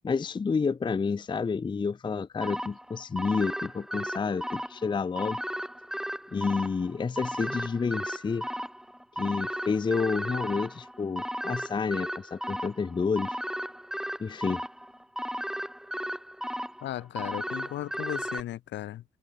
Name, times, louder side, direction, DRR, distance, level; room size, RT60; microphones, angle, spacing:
voice 1, 0.0-5.4 6.3-8.5 9.2-13.4 14.2-14.6, left 5 dB, 25° left, 0.5 m, -29 dB
sound 1, 2.4-18.4, equal, ahead, 1.2 m, -35 dB
voice 2, 16.8-19.0, left 13 dB, 70° left, 1.0 m, -36 dB
open air
hypercardioid pair, 40°, 20 cm